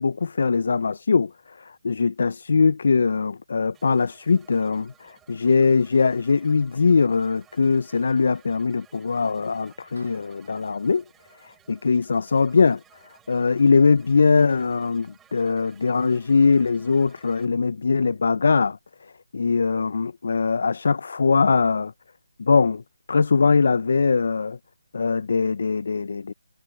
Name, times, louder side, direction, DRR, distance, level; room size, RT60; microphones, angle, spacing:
voice 1, 0.0-11.0 11.4-12.8 13.3-18.8 19.3-21.9 22.4-22.8 23.1-24.6 24.9-26.3, left 4 dB, 60° left, 0.4 m, -21 dB
sound 1, 3.7-17.5, right 9 dB, 10° right, 3.5 m, -57 dB
Clapping, 10.0-10.6, right 3 dB, 90° right, 6.0 m, -53 dB
figure-of-eight pair, 160°, 0 cm